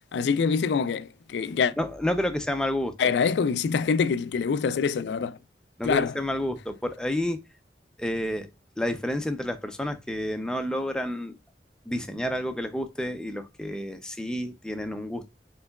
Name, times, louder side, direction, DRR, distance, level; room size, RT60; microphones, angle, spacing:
voice 1, 0.1-1.7 3.0-5.4 5.8-6.1, left 6 dB, 80° left, 0.3 m, -25 dB
voice 2, 1.8-2.9 5.8-7.4 8.0-8.5 8.8-11.4 11.9-15.3, left 1 dB, 5° left, 0.4 m, -30 dB
4.3 x 3.9 x 2.2 m
head